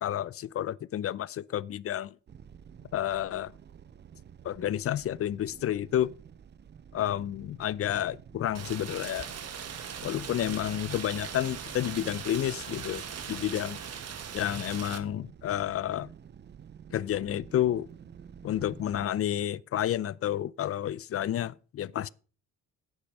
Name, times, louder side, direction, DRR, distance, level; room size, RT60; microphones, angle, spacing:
voice 1, 0.0-2.2 2.9-3.5 4.4-6.1 6.9-9.3 10.0-13.8 14.3-16.1 16.9-17.9 18.4-22.1, left 11 dB, 50° left, 0.5 m, -30 dB
sound 1, 2.3-19.1, right 8 dB, 35° right, 0.5 m, -51 dB
Rain, 8.5-15.0, right 7 dB, 55° right, 1.4 m, -40 dB
8.9 x 8.5 x 5.4 m
cardioid pair, 90°, 30 cm